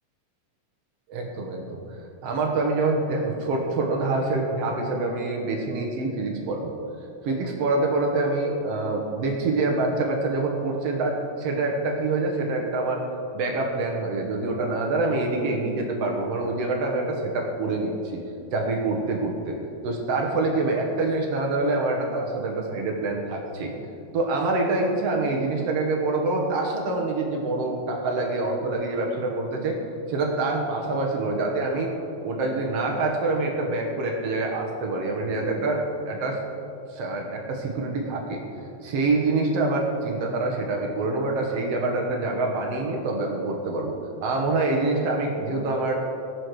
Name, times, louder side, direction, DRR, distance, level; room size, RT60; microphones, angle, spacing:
voice 1, 1.1-1.8 2.2-6.8 7.2-13.0 13.3-18.2 18.5-19.6 19.8-23.7 24.1-29.8 30.1-31.9 32.2-36.4 36.9-38.4 38.8-44.0 44.2-45.9, right 2 dB, 60° right, 1 dB, 2.0 m, -26 dB
18.5 x 6.4 x 4.8 m, 2.5 s
omnidirectional pair, 3.9 m